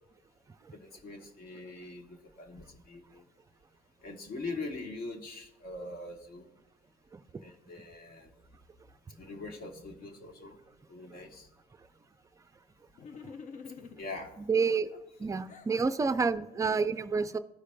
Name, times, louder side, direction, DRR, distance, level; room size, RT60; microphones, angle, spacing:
voice 1, 0.7-3.2 4.0-6.5 7.4-8.3 9.1-10.6 10.9-11.5 14.0-14.4, left 3 dB, 65° left, 3 dB, 1.4 m, -42 dB
sound 1, 13.0-14.3 14.9-15.8, left 5 dB, 50° left, 0.6 m, -47 dB
voice 2, 14.4-14.9 15.2-17.4, right 5 dB, 20° right, 11 dB, 0.4 m, -29 dB
13.5 x 4.9 x 2.2 m, 0.95 s
cardioid pair, 110°, 17 cm